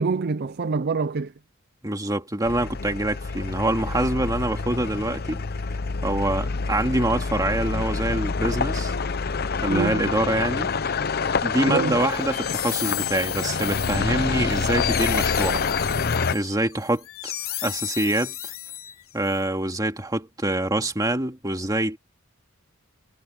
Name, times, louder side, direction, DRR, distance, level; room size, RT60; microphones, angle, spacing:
voice 1, 0.0-1.3 9.7-10.1 11.6-12.0, right 4 dB, 50° right, 0.5 m, -25 dB
voice 2, 1.8-5.4 6.0-8.9 9.6-10.7 11.4-15.6 16.3-17.3 17.6-18.4 19.1-22.0, right 1 dB, 20° right, 2.3 m, -25 dB
sound 1, 2.5-16.4, left 4 dB, 50° left, 0.7 m, -27 dB
sound 2, 12.0-19.3, left 14 dB, 80° left, 3.4 m, -34 dB
head